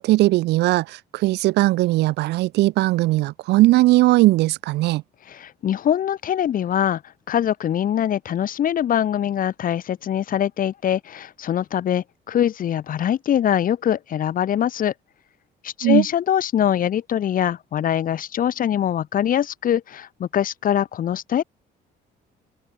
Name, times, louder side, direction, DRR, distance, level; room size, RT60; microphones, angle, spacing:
voice 1, 0.0-5.0 15.8-16.0, right 18 dB, 85° right, 4.0 m, -18 dB
voice 2, 5.3-7.0 7.3-14.9 15.6-21.4, left 10 dB, 55° left, 7.5 m, -23 dB
open air
cardioid pair, 110°, 17 cm